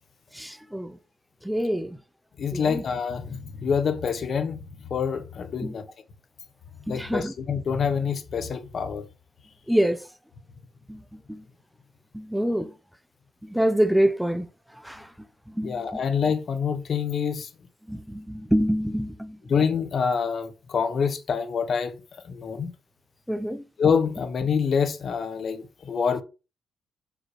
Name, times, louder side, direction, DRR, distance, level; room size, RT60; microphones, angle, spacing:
voice 1, 0.3-1.0 1.4-2.0 2.5-2.8 5.6-5.8 6.9-7.3 9.7-10.1 10.9-11.5 12.1-12.7 13.4-14.5 14.8-15.1 15.5-16.0 17.9-19.4 23.3-23.6, equal, ahead, 0.6 m, -26 dB
voice 2, 2.4-4.6 4.9-5.8 6.9-9.0 15.6-17.5 19.5-21.9 22.3-22.7 23.8-26.2, left 6 dB, 50° left, 1.0 m, -26 dB
5.8 x 5.1 x 3.2 m
cardioid pair, 90°, 0 cm